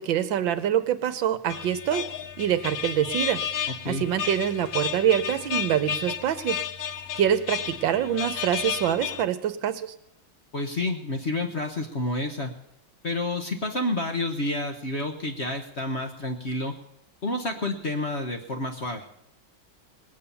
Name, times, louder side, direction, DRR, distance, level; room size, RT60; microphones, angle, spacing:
voice 1, 0.0-2.0 2.4-6.6 7.2-9.9, right 10 dB, 70° right, 11 dB, 1.5 m, -25 dB
sound 1, 1.5-9.2, left 8 dB, 65° left, 0.9 m, -32 dB
voice 2, 10.5-12.5 13.0-16.7 17.2-19.1, left 2 dB, 40° left, 5 dB, 1.1 m, -29 dB
19.5 x 8.7 x 7.0 m, 0.78 s
omnidirectional pair, 2.2 m